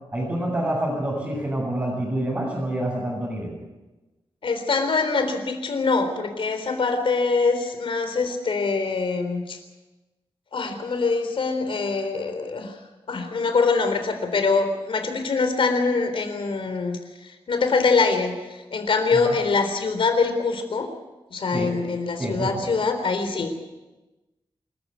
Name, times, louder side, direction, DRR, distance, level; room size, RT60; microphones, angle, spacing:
voice 1, 0.1-3.5 19.1-19.3 21.5-21.7 22.2-22.7, right 1 dB, 25° right, -6 dB, 7.8 m, -27 dB
voice 2, 4.4-9.6 10.5-12.8 13.1-20.9 21.3-23.6, left 4 dB, 65° left, 7 dB, 3.8 m, -24 dB
26.0 x 14.5 x 8.3 m, 1.1 s
wide cardioid pair, 120°, 10 cm